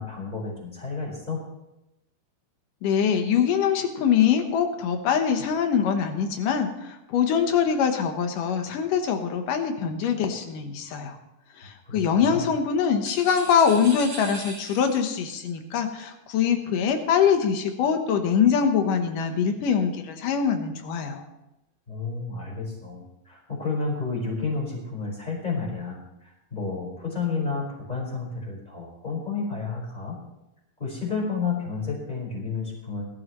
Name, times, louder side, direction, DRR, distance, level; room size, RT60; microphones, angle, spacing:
voice 1, 0.0-1.4 11.8-12.0 12.3-12.5 21.9-30.2 30.8-33.1, left 4 dB, 10° left, -2 dB, 4.5 m, -31 dB
voice 2, 2.8-11.2 11.6-21.3, left 7 dB, 70° left, 6 dB, 2.5 m, -23 dB
sound 1, 13.0-15.2, right 2 dB, 40° right, 3.3 m, -40 dB
20.5 x 12.5 x 3.1 m, 0.93 s
omnidirectional pair, 4.3 m